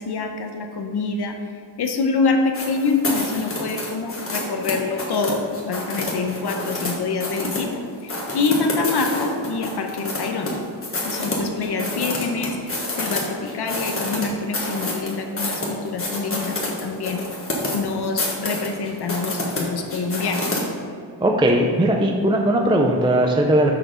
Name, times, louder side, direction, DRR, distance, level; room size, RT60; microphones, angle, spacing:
voice 1, 0.0-1.4 1.8-10.6 11.0-17.2 17.7-20.5, left 4 dB, 55° left, 5 dB, 0.8 m, -26 dB
sound 1, 2.5-6.9 7.2-7.7 8.1-10.5 10.8-13.2 13.5-20.6, left 2 dB, 30° left, 1.3 m, -28 dB
voice 2, 21.2-23.8, right 1 dB, 10° right, 2 dB, 0.4 m, -18 dB
6.6 x 5.8 x 5.0 m, 2.2 s
wide cardioid pair, 160°, 46 cm